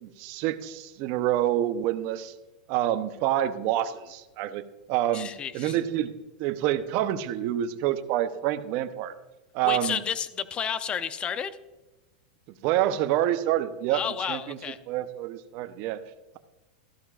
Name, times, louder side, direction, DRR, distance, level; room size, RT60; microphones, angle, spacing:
voice 1, 0.0-2.3 2.7-4.6 4.9-5.3 5.5-6.1 6.4-9.1 9.5-10.0 12.6-14.6 14.9-16.0, right 12 dB, 50° right, 10 dB, 0.8 m, -27 dB
voice 2, 5.1-5.8 9.6-11.5 13.9-14.8, left 8 dB, 25° left, 13 dB, 0.7 m, -31 dB
13.5 x 12.0 x 2.5 m, 1.1 s
hypercardioid pair, 125°, 4 cm